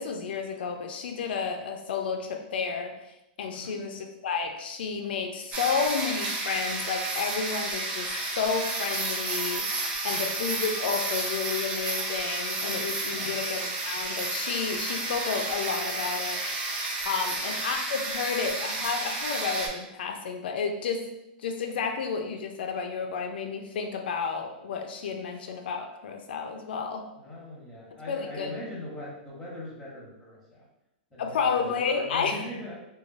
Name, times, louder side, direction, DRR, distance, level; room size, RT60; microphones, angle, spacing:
voice 1, 0.0-2.9 3.4-16.4 17.1-21.1 21.4-27.1 28.1-28.5 31.2-32.4, left 5 dB, 80° left, 4 dB, 0.4 m, -31 dB
sound 1, 5.5-19.7, right 2 dB, 20° right, 0.4 m, -31 dB
voice 2, 13.1-13.4 17.2-17.4 27.2-30.6 31.1-32.8, left 1 dB, ahead, -7 dB, 0.8 m, -41 dB
3.1 x 2.2 x 2.5 m, 0.90 s
supercardioid pair, 170°, 5 cm